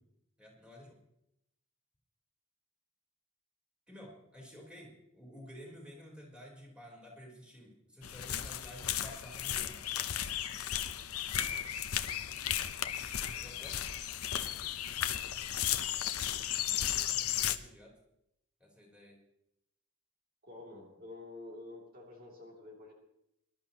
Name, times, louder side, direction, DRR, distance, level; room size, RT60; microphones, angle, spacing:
voice 1, 0.4-1.0 3.9-9.8 13.3-13.8 16.7-18.0 18.6-19.2, equal, 5° right, -2 dB, 3.8 m, -52 dB
sound 1, 8.0-17.6, left 11 dB, 85° left, 0.8 m, -35 dB
voice 2, 20.4-22.9, left 2 dB, 45° right, -2 dB, 2.7 m, -49 dB
23.5 x 12.0 x 2.9 m, 0.82 s
head